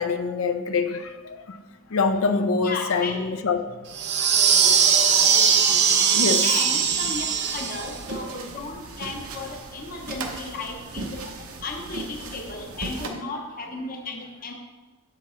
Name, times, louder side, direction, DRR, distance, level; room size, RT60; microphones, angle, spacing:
voice 1, 0.0-1.6 1.9-3.7 4.2-4.5 6.1-6.4, left 4 dB, 70° left, 0.6 m, -25 dB
voice 2, 2.6-3.2 6.4-11.2 11.6-14.5, left 3 dB, 40° left, 0.9 m, -34 dB
sound 1, 3.9-8.0, right 7 dB, 55° right, 0.8 m, -20 dB
sound 2, 7.4-13.1, right 3 dB, 80° right, 0.9 m, -37 dB
8.7 x 7.0 x 3.1 m
head